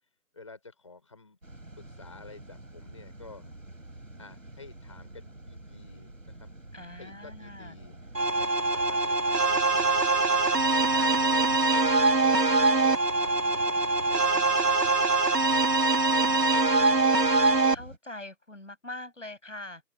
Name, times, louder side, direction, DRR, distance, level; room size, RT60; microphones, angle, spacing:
voice 1, 0.3-1.4 1.8-3.6 4.2-6.5 7.0-7.9 8.4-11.4 11.9-12.9 13.2-13.8 14.0-15.0 15.7-17.0, left 3 dB, 20° left, 5.4 m, -51 dB
sound 1, 1.4-18.0, right 1 dB, 55° right, 7.9 m, -47 dB
voice 2, 6.7-7.8 10.9-11.2 16.1-16.5 17.7-19.8, left 2 dB, 50° left, 7.5 m, -43 dB
sound 2, 8.1-17.7, right 3 dB, 80° right, 1.7 m, -23 dB
open air
figure-of-eight pair, 170°, 48 cm